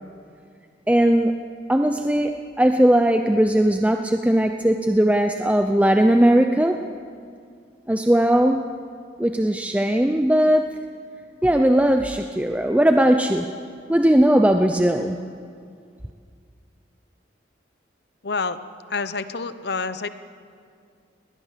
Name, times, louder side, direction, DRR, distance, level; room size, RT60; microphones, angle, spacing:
voice 1, 0.9-1.4 1.7-6.8 7.9-8.6 9.2-10.7 11.4-13.5 13.9-15.2, right 1 dB, 10° right, 5 dB, 0.6 m, -18 dB
voice 2, 18.2-18.6 18.9-20.1, left 4 dB, 60° left, 12 dB, 0.9 m, -27 dB
21.0 x 19.0 x 7.5 m, 2.2 s
head